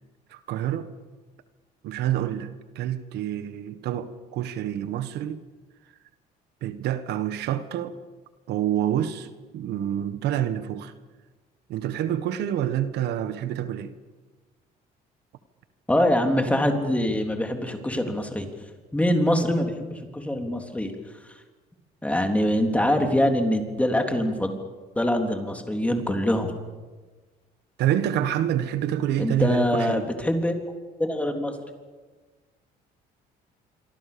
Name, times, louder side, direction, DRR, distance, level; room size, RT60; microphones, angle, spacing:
voice 1, 0.3-0.9 1.8-2.5 2.7-5.4 6.6-7.9 8.5-10.9 11.7-13.9 27.8-30.1, right 11 dB, 80° right, 1.6 m, -27 dB
voice 2, 15.9-21.4 22.0-24.6 25.0-26.5 29.2-30.6 31.0-31.6, left 1 dB, 10° left, 3.6 m, -24 dB
26.5 x 24.5 x 7.0 m
cardioid pair, 110°, 17 cm